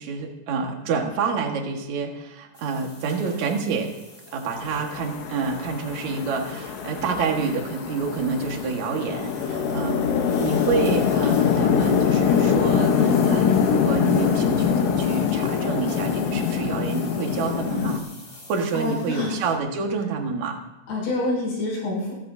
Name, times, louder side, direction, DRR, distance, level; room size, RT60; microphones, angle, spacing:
voice 1, 0.0-3.9 4.3-10.0 10.4-18.0 18.5-20.6, right 5 dB, 65° right, 2 dB, 1.8 m, -28 dB
sound 1, 2.5-19.5, left 1 dB, 15° left, 2.8 m, -45 dB
Chatter / Traffic noise roadway noise / Train, 4.6-18.0, left 7 dB, 75° left, 3.6 m, -23 dB
Bowed string instrument, 9.4-13.6, left 2 dB, 40° left, 1.5 m, -31 dB
voice 2, 18.7-19.3 20.9-22.1, left 2 dB, 55° left, -3 dB, 8.3 m, -26 dB
26.0 x 13.5 x 2.8 m, 1.0 s
omnidirectional pair, 5.9 m